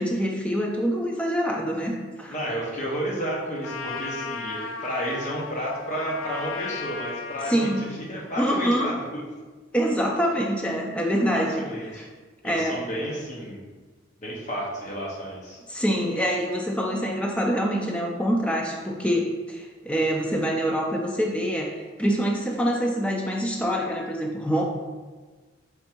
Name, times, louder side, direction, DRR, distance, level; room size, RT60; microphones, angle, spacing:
voice 1, 0.0-2.4 7.5-7.9 8.4-8.9 9.7-12.0 12.4-12.8 15.7-24.6, equal, 5° left, 0 dB, 0.4 m, -25 dB
voice 2, 2.3-9.2 11.3-12.1 12.4-13.6 14.2-15.6, equal, 35° left, -3 dB, 0.8 m, -32 dB
Trumpet, 3.6-8.0, left 4 dB, 80° left, 0.4 m, -35 dB
3.5 x 2.6 x 4.4 m, 1.3 s
head